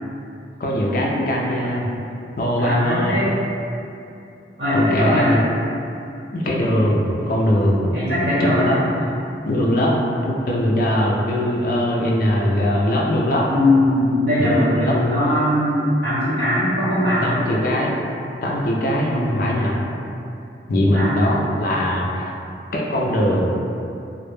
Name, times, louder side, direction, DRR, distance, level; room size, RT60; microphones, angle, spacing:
voice 1, 0.6-1.9 2.4-3.1 4.7-5.4 6.3-7.9 8.4-9.1 9.5-13.5 14.4-15.0 17.2-17.9 18.4-19.7 20.7-22.3 22.7-23.5, equal, 50° left, -3 dB, 0.3 m, -21 dB
voice 2, 2.5-3.3 4.6-5.3 7.9-8.7 13.5-17.4 19.1-19.3 20.8-21.1, left 1 dB, 65° right, -11 dB, 1.0 m, -20 dB
2.1 x 2.0 x 3.0 m, 2.7 s
head